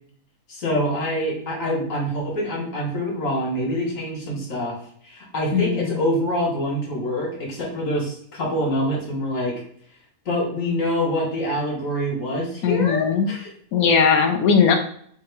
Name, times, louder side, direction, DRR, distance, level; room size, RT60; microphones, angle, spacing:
voice 1, 0.5-4.8 5.0-9.5 10.2-13.5, equal, 55° left, -2 dB, 1.7 m, -25 dB
voice 2, 5.5-6.0 12.6-13.3 13.7-14.8, left 6 dB, 75° left, 5 dB, 1.0 m, -19 dB
3.6 x 2.9 x 4.6 m, 0.62 s
omnidirectional pair, 1.7 m